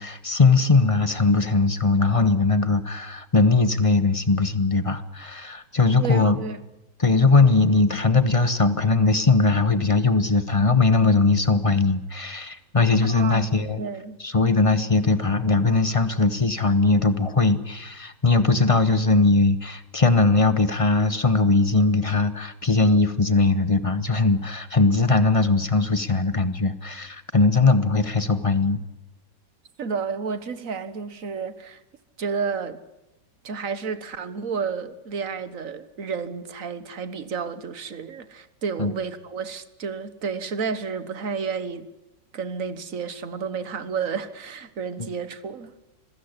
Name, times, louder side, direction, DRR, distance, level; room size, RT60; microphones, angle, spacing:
voice 1, 0.0-6.4 7.0-13.8 14.2-28.8 38.8-38.9, left 3 dB, 20° left, 1.0 m, -20 dB
voice 2, 6.0-6.6 13.1-13.5 13.8-14.2 29.8-31.8 32.2-32.8 33.4-41.9 42.3-45.7, right 5 dB, 50° right, 1.6 m, -31 dB
26.5 x 16.0 x 9.8 m
omnidirectional pair, 2.0 m